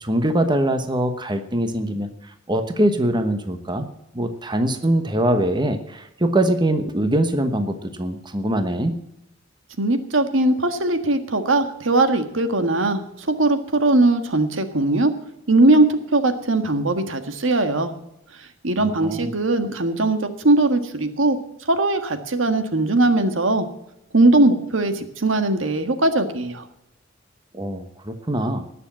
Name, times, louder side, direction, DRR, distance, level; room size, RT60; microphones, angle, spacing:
voice 1, 0.0-3.9 4.1-9.0 18.8-19.3 27.5-28.6, right 1 dB, 25° right, 8 dB, 1.1 m, -23 dB
voice 2, 9.8-15.1 15.5-17.9 18.6-21.4 21.7-23.7 24.1-26.6, right 2 dB, 80° right, 8 dB, 1.6 m, -20 dB
19.0 x 7.0 x 7.5 m, 0.83 s
head